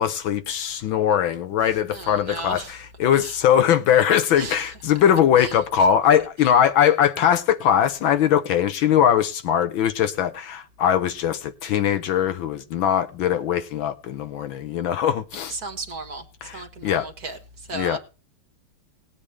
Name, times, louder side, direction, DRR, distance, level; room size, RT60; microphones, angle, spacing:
voice 1, 0.0-15.6 16.4-17.1 17.7-18.0, left 9 dB, 70° left, 1.5 m, -21 dB
voice 2, 1.9-2.7 3.2-3.3 4.4-4.6 5.4-5.5 15.5-16.2 16.5-17.4 17.7-18.0, right 3 dB, 45° right, 1.7 m, -34 dB
19.0 x 8.5 x 3.3 m
omnidirectional pair, 2.4 m